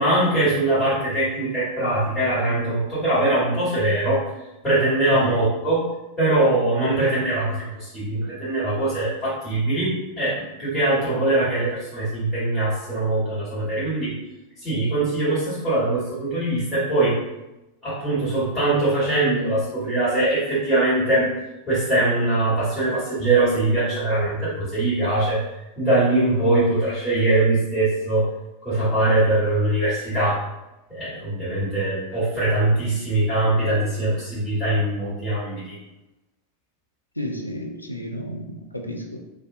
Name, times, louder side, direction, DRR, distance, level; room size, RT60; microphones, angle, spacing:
voice 1, 0.0-4.2 4.6-5.9 6.2-14.1 14.6-17.2 17.8-21.3 21.7-25.4 25.8-28.3 28.6-30.4 30.9-35.8, right 2 dB, 15° left, -14 dB, 1.3 m, -22 dB
voice 2, 37.2-39.2, equal, 85° left, 1 dB, 0.3 m, -32 dB
2.4 x 2.1 x 2.5 m, 0.98 s
figure-of-eight pair, 90°, 0 cm